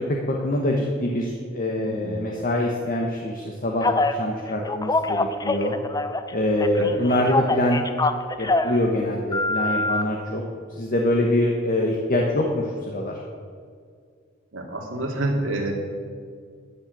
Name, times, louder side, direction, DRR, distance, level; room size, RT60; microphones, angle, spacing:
voice 1, 0.0-5.7 6.3-7.8 8.4-10.4 10.8-13.2, left 1 dB, 45° left, 0 dB, 1.3 m, -24 dB
voice 2, 1.8-2.1 6.7-6.9 14.5-15.7, right 1 dB, 80° right, 0 dB, 2.5 m, -28 dB
Telephone, 3.8-4.2 4.7-6.3 6.6-8.8 9.3-10.0, left 2 dB, 20° left, 0.6 m, -24 dB
13.5 x 7.6 x 8.0 m, 2.1 s
head